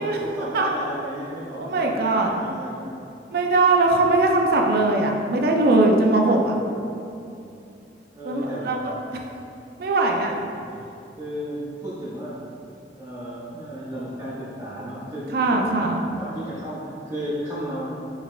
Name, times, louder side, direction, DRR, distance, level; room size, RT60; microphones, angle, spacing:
voice 1, 0.0-3.0 7.0-7.6 8.1-8.7 10.2-10.9 11.2-12.4 13.0-15.9 16.2-17.9, equal, 20° right, -11 dB, 0.7 m, -34 dB
voice 2, 1.6-2.3 3.3-6.5 8.2-9.2 9.8-10.3 15.3-16.1, right 2 dB, 55° right, 1 dB, 0.4 m, -20 dB
4.8 x 3.2 x 2.3 m, 2.6 s
head